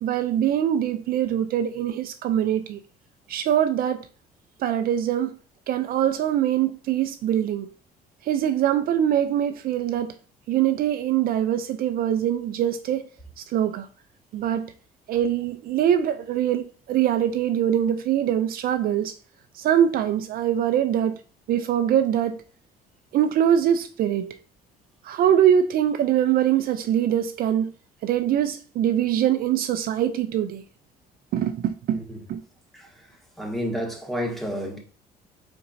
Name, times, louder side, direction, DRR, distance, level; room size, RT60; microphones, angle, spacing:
voice 1, 0.0-2.8 3.3-4.0 4.6-5.3 5.7-7.7 8.2-10.1 10.5-13.1 13.4-13.9 14.3-14.7 15.1-19.1 19.5-21.2 21.5-22.4 23.1-24.4 25.0-27.7 28.0-30.6 31.3-32.0 32.3-32.4, right 10 dB, 60° right, 0.4 m, -23 dB
voice 2, 33.4-34.8, equal, ahead, 1.2 m, -30 dB
4.4 x 3.9 x 2.6 m
cardioid pair, 110°, 17 cm